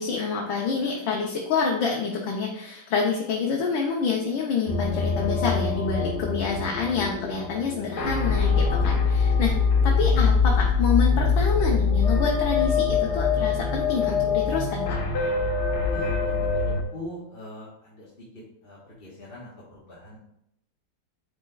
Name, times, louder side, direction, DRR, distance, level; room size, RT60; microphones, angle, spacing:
voice 1, 0.0-9.5 9.8-15.0, left 5 dB, 90° left, -1 dB, 1.6 m, -27 dB
sound 1, 4.7-16.8, left 5 dB, 60° left, 1.3 m, -23 dB
voice 2, 15.9-20.2, left 1 dB, 35° left, -7 dB, 1.3 m, -42 dB
9.5 x 4.3 x 2.3 m, 0.77 s
omnidirectional pair, 2.1 m